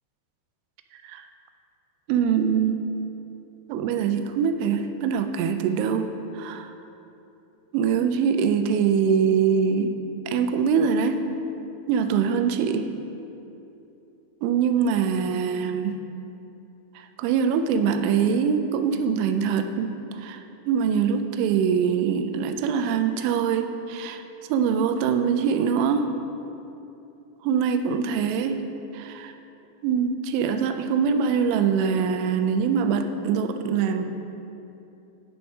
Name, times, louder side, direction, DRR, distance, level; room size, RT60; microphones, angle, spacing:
voice 1, 2.1-2.8 3.7-6.7 7.7-10.0 10.3-11.2 11.9-12.9 14.4-16.0 17.0-24.2 24.5-26.1 27.4-28.6 28.9-29.4 29.8-34.1, right 6 dB, 85° right, 8 dB, 3.0 m, -23 dB
11.0 x 4.4 x 5.3 m, 2.8 s
omnidirectional pair, 5.4 m